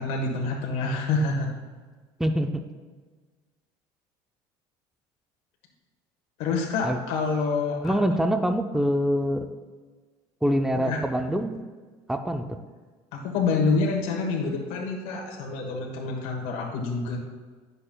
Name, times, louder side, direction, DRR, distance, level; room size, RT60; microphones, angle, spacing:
voice 1, 0.0-1.5 6.4-7.9 10.7-11.0 13.1-17.2, left 4 dB, 70° left, 0 dB, 1.3 m, -27 dB
voice 2, 7.8-9.5 10.4-11.6 12.1-12.4, equal, 5° right, 7 dB, 0.5 m, -24 dB
10.5 x 6.8 x 2.3 m, 1.4 s
supercardioid pair, 105°, 11 cm